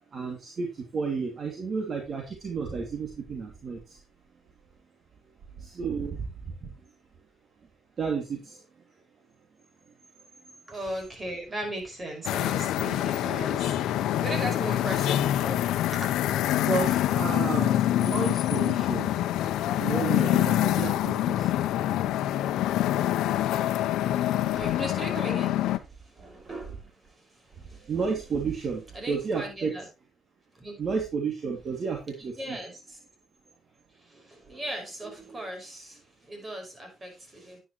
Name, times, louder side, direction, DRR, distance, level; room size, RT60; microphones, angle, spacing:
voice 1, 0.1-4.0 5.6-6.7 8.0-8.6 16.7-19.2 19.8-21.6 27.6-29.7 30.8-32.6, right 5 dB, 50° right, 2 dB, 2.4 m, -32 dB
voice 2, 10.7-16.1 24.6-27.9 28.9-29.9 30.5-30.8 32.4-33.0 33.9-37.6, right 1 dB, 30° right, 3 dB, 5.6 m, -38 dB
sound 1, 12.2-25.8, left 13 dB, 85° left, 0.7 m, -26 dB
10.0 x 10.0 x 3.1 m, 0.26 s
cardioid pair, 90°, 0 cm